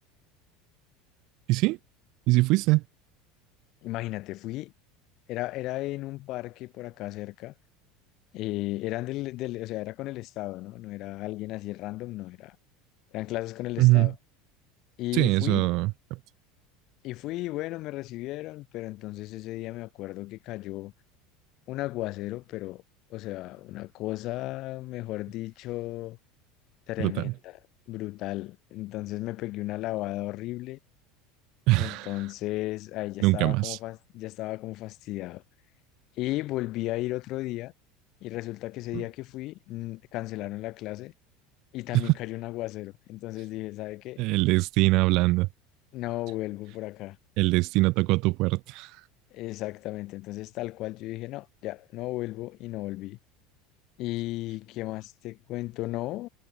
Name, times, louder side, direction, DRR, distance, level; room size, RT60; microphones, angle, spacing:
voice 1, 2.3-2.8 13.8-14.1 15.1-15.9 27.0-27.3 31.7-32.1 33.2-33.8 38.9-39.0 41.9-42.1 44.2-45.5 47.4-48.9, right 22 dB, 50° right, 1.2 m, -22 dB
voice 2, 3.8-4.7 5.3-7.5 8.3-12.6 13.1-14.1 15.0-15.7 17.0-20.9 21.7-22.8 23.1-26.2 26.9-27.6 27.9-30.8 31.8-35.4 36.2-37.7 38.2-41.1 41.7-44.2 45.9-47.2 49.3-53.2 54.0-56.3, left 18 dB, 45° left, 0.9 m, -35 dB
supercardioid pair, 155°, 0 cm